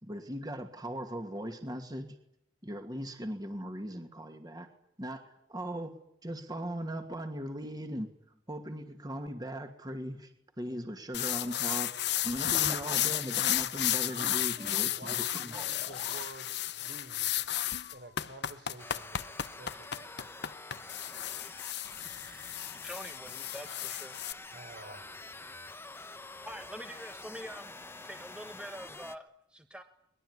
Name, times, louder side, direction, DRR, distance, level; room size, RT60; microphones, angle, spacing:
voice 1, 0.0-2.1 2.6-4.7 5.0-5.9 6.2-8.1 8.5-11.9 12.2-15.7, equal, 20° right, 5 dB, 2.4 m, -39 dB
sound 1, 11.1-24.3, left 12 dB, 60° left, 1.0 m, -33 dB
Breathing, 14.1-14.7 15.5-16.3 17.4-18.3, left 4 dB, 35° left, 1.1 m, -50 dB
voice 2, 14.9-17.4 17.9-20.2 24.5-25.1, right 2 dB, 55° right, 7 dB, 4.0 m, -50 dB
sound 2, 18.8-29.2, left 3 dB, 10° left, 1.0 m, -47 dB
voice 3, 22.8-24.1 26.4-29.8, equal, 5° right, 6 dB, 1.3 m, -46 dB
23.5 x 21.5 x 9.8 m, 0.73 s
head